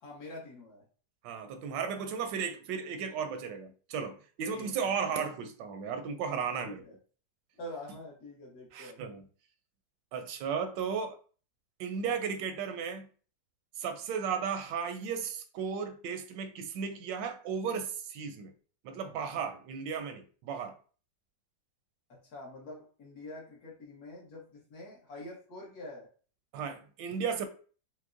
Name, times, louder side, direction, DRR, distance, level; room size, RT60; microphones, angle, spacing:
voice 1, 0.0-0.8 4.5-5.0 6.6-6.9 7.6-9.0 22.1-26.1, left 1 dB, 60° left, 1.6 m, -46 dB
voice 2, 1.2-6.8 8.7-9.3 10.1-11.2 11.8-13.1 13.8-18.5 18.8-20.8 26.5-27.5, right 6 dB, 85° right, 1.3 m, -35 dB
5.9 x 2.2 x 2.5 m
omnidirectional pair, 1.9 m